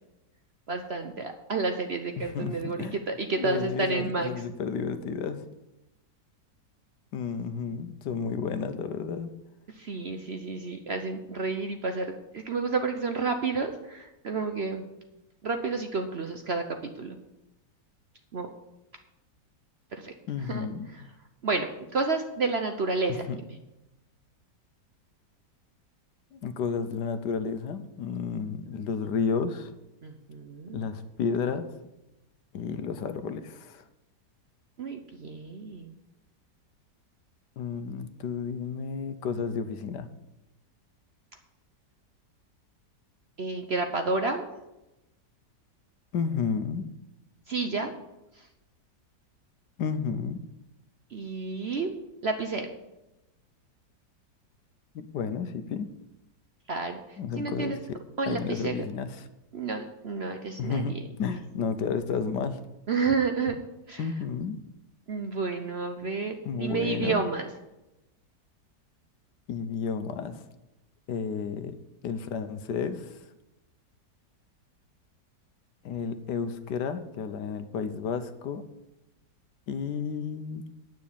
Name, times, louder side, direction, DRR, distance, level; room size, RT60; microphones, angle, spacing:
voice 1, 0.7-4.3 9.8-14.9 15.4-17.2 18.3-18.5 19.9-20.1 20.4-21.0 21.4-21.7 21.9-23.6 30.0-30.8 34.8-35.9 43.4-44.5 47.5-47.9 51.1-51.9 52.2-52.7 56.7-57.8 58.2-58.7 59.5-61.0 62.9-63.6 63.9-64.1 65.1-67.5, right 4 dB, 50° right, 6 dB, 0.8 m, -30 dB
voice 2, 2.2-3.0 3.4-5.4 7.1-9.3 20.3-20.9 23.1-23.4 26.3-29.7 30.7-31.7 32.5-33.8 37.6-40.1 46.1-46.9 49.8-50.4 54.9-55.9 57.2-58.0 58.3-59.3 60.6-62.6 64.0-64.6 66.4-67.2 69.5-70.4 71.1-71.8 72.0-73.2 75.8-78.6 79.7-80.6, left 6 dB, 75° left, 10 dB, 1.4 m, -32 dB
9.6 x 6.3 x 8.6 m, 0.95 s
omnidirectional pair, 1.9 m